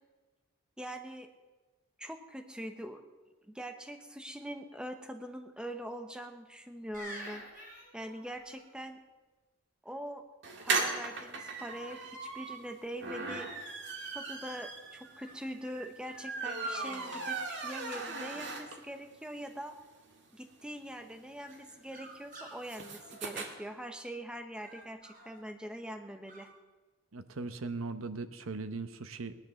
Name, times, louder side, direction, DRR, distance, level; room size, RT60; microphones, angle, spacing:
voice 1, 0.8-1.3 2.0-3.0 3.4-7.4 7.9-9.0 9.8-10.2 10.6-13.5 14.1-19.7 20.3-26.5, right 1 dB, 5° right, 6 dB, 1.0 m, -43 dB
sound 1, 6.9-8.7 11.9-12.3 13.0-13.8 14.4-15.4 16.0-16.2 16.4-16.9 17.2-17.8 21.5-24.0 24.5-25.4 26.3-26.5, equal, 40° right, 4.1 m, -51 dB
sound 2, 10.4-19.0 19.4-19.5 19.7-19.8 20.1-23.5, right 3 dB, 55° right, 2.0 m, -38 dB
voice 2, 27.1-29.4, right 3 dB, 80° right, 10 dB, 0.9 m, -39 dB
19.0 x 11.0 x 6.5 m, 1.3 s
head